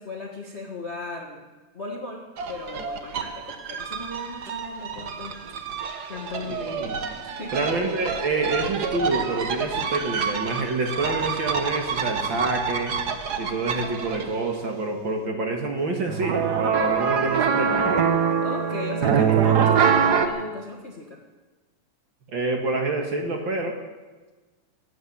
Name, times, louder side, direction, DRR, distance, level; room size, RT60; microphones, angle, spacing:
voice 1, 0.0-1.4 1.7-5.3 6.1-6.8 7.2-7.7 18.4-21.2, left 2 dB, 35° left, 1 dB, 1.1 m, -36 dB
sound 1, 2.4-14.5 16.1-20.3, right 7 dB, 70° right, 0.9 m, -25 dB
voice 2, 6.6-7.0 7.5-13.0 13.4-18.0 22.3-23.8, right 2 dB, 45° right, 3 dB, 2.0 m, -27 dB
18.5 x 8.9 x 8.6 m, 1.3 s
omnidirectional pair, 3.4 m